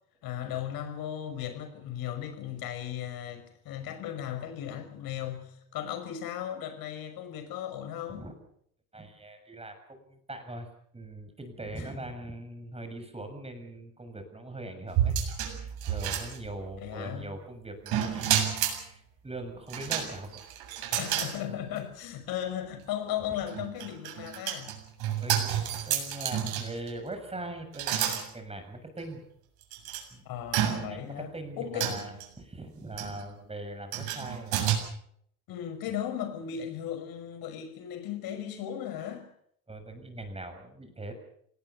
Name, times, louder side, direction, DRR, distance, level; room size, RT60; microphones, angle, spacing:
voice 1, 0.2-8.3 11.8-11.9 16.8-17.3 20.9-24.8 30.2-31.3 31.6-32.1 35.5-39.3, left 10 dB, 55° left, 6.1 m, -36 dB
voice 2, 8.9-10.7 10.9-18.5 18.9-20.4 25.2-25.5 25.8-29.2 30.1-30.2 30.8-34.5 39.7-41.1, right 1 dB, 15° right, 6.8 m, -41 dB
sound 1, 14.9-16.8 17.9-18.8 19.7-21.3 21.8-21.9 23.4-26.9 27.7-28.2 29.0-29.1 29.7-30.0 30.5-31.1 31.8-32.2 33.0-33.2 33.9-34.8, right 10 dB, 60° right, 7.6 m, -30 dB
27.5 x 19.0 x 6.9 m
hypercardioid pair, 70°, 43 cm